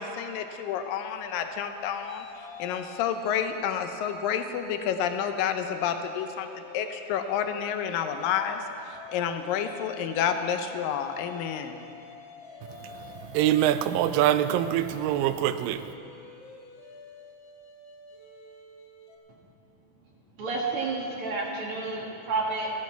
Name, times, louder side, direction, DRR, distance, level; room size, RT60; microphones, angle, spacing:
voice 1, 0.0-2.3 2.6-11.8, left 8 dB, 85° left, 7 dB, 2.4 m, -30 dB
sound 1, 1.2-5.2 5.6-19.2, left 5 dB, 70° left, 1.1 m, -48 dB
voice 2, 12.7-15.9, right 12 dB, 85° right, 12 dB, 2.2 m, -25 dB
voice 3, 20.4-22.7, right 3 dB, 50° right, -3 dB, 2.1 m, -30 dB
14.0 x 11.5 x 4.6 m, 2.7 s
omnidirectional pair, 3.9 m